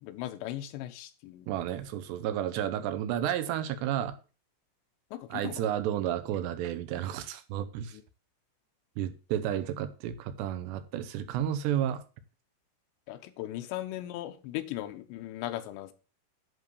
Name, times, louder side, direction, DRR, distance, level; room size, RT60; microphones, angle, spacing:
voice 1, 0.0-1.5 5.1-5.6 7.9-8.0 13.1-15.9, left 14 dB, 90° left, 3.0 m, -38 dB
voice 2, 1.5-4.2 5.3-8.0 9.0-12.0, right 10 dB, 80° right, 2.9 m, -32 dB
11.0 x 3.8 x 6.7 m
omnidirectional pair, 5.0 m